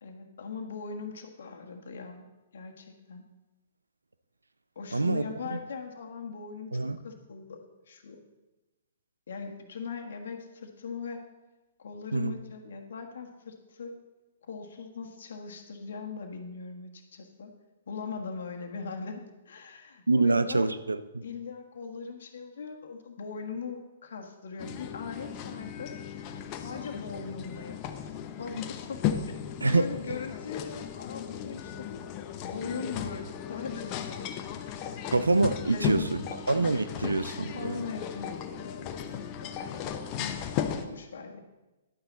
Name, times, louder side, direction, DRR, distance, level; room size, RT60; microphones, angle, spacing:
voice 1, 0.0-2.2 2.5-3.2 4.7-6.7 7.0-7.6 7.9-8.2 9.3-11.3 11.8-14.0 14.5-17.5 17.9-20.7 21.2-26.0 26.5-29.4 29.7-32.0 32.4-35.1 35.7-36.4 37.4-40.5 40.8-41.4, left 5 dB, 65° left, 4 dB, 1.5 m, -40 dB
voice 2, 4.9-5.2 5.5-5.6 6.7-7.0 12.1-12.3 20.1-21.2 29.6-29.9 35.1-36.2 36.5-37.8, right 3 dB, 85° right, 12 dB, 0.6 m, -26 dB
sound 1, 24.6-40.9, left 9 dB, 35° left, 0.8 m, -36 dB
11.0 x 9.1 x 4.0 m, 1.1 s
figure-of-eight pair, 120°, 0 cm